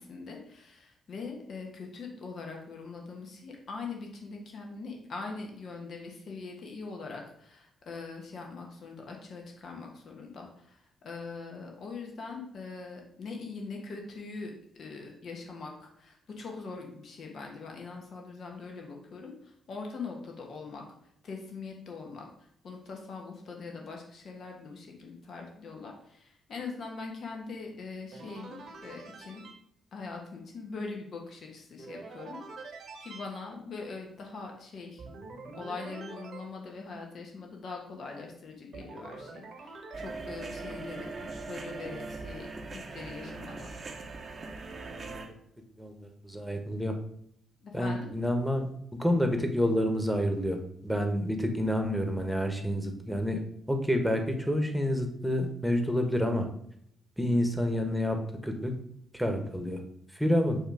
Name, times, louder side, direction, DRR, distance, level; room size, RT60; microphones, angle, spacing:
voice 1, 0.0-20.8 21.2-29.4 29.9-35.0 35.5-43.7 47.6-48.1, left 4 dB, 60° left, 1 dB, 1.2 m, -42 dB
sound 1, 28.1-29.6 31.8-33.2 35.0-36.4 38.7-40.2, right 3 dB, 65° right, 1.3 m, -45 dB
sound 2, 39.9-45.3, right 3 dB, 45° right, 0.9 m, -40 dB
voice 2, 45.8-46.9 47.7-48.7 49.0-53.4 53.7-56.5 57.2-58.2 58.4-58.7 59.1-59.8 60.1-60.6, equal, ahead, 4 dB, 1.3 m, -28 dB
6.5 x 3.0 x 4.8 m, 0.71 s
hypercardioid pair, 40°, 0 cm